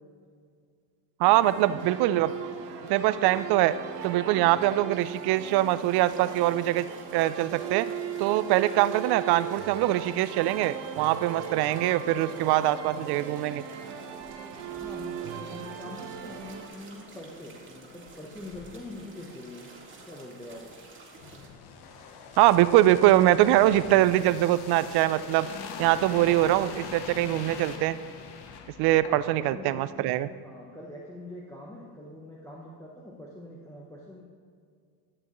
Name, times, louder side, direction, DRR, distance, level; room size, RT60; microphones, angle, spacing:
voice 1, 1.2-2.3 2.9-3.8 4.0-6.9 7.1-7.9 8.2-13.6 22.4-25.5 25.8-28.0 28.8-30.3, right 14 dB, 60° right, 15 dB, 0.5 m, -23 dB
sound 1, 1.2-16.7, right 8 dB, 80° right, 1.1 m, -38 dB
sound 2, 5.0-21.5, right 2 dB, 25° right, 1.8 m, -51 dB
voice 2, 14.7-19.7 20.1-20.7 29.0-29.2 29.5-34.2, left 1 dB, 5° left, -3 dB, 0.8 m, -44 dB
sound 3, 21.2-29.5 29.8-30.0, left 5 dB, 60° left, 1.0 m, -42 dB
12.0 x 6.8 x 3.0 m, 2.2 s
supercardioid pair, 100°, 45 cm